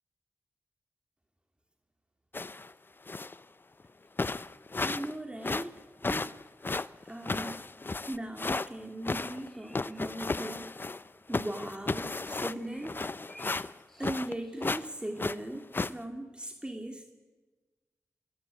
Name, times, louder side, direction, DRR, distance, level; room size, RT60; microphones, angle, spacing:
sound 1, 2.3-2.7 3.1-3.4 3.8-3.9 4.2-5.1 5.4-8.7 9.0-11.1 11.3-14.3 14.6-14.9 15.2-15.9, left 3 dB, 40° left, 0.7 m, -34 dB
voice 1, 4.8-5.8 6.1-6.3 7.0-7.7 8.1-10.8 11.3-13.0 14.0-17.0, right 1 dB, 15° right, 3 dB, 2.8 m, -39 dB
sound 2, 9.5-10.1 12.6-14.9, equal, 5° left, 2.7 m, -56 dB
27.0 x 17.0 x 8.7 m, 1.3 s
cardioid pair, 45°, 6 cm